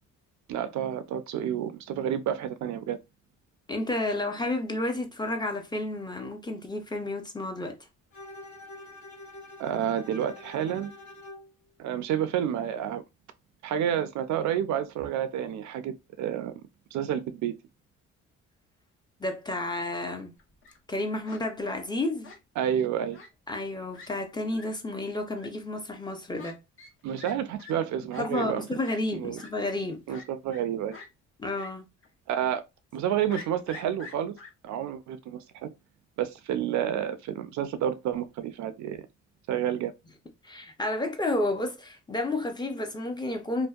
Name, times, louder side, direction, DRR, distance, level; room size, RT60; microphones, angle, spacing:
voice 1, 0.5-3.0 9.6-10.9 11.8-13.0 13.6-16.6 16.9-17.5 22.6-23.2 27.0-28.6 29.1-29.4 30.1-31.0 32.3-32.6 32.9-34.4 34.6-35.7 36.2-39.0 39.5-39.9, right 10 dB, 70° right, 0.4 m, -29 dB
voice 2, 3.7-7.8 19.2-20.3 20.9-22.3 23.5-26.6 28.2-30.0 31.4-31.8 40.4-43.7, left 2 dB, 15° left, 0.6 m, -31 dB
Bowed string instrument, 8.1-11.5, left 2 dB, 70° left, 1.0 m, -46 dB
Fowl, 20.4-20.8 21.2-21.4 22.2-22.7 23.1-23.3 23.6-23.7 23.9-24.1 24.5-24.6 25.4-25.5 26.4-26.5 26.8-26.9 27.2-27.3 27.6-27.7 28.1-28.2 28.8-29.0 29.4-29.5 30.1-30.6 30.9-31.1 31.6-31.7 32.0-32.1 33.3-34.5, left 4 dB, 45° left, 0.9 m, -46 dB
2.6 x 2.1 x 2.3 m
cardioid pair, 90°, 30 cm